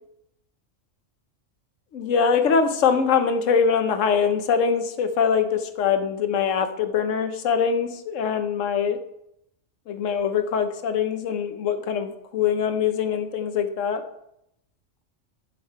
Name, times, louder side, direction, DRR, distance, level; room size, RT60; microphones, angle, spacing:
voice 1, 1.9-9.0 9.9-14.0, left 6 dB, 85° left, 9 dB, 1.1 m, -23 dB
8.7 x 6.3 x 4.7 m, 0.80 s
omnidirectional pair, 1.3 m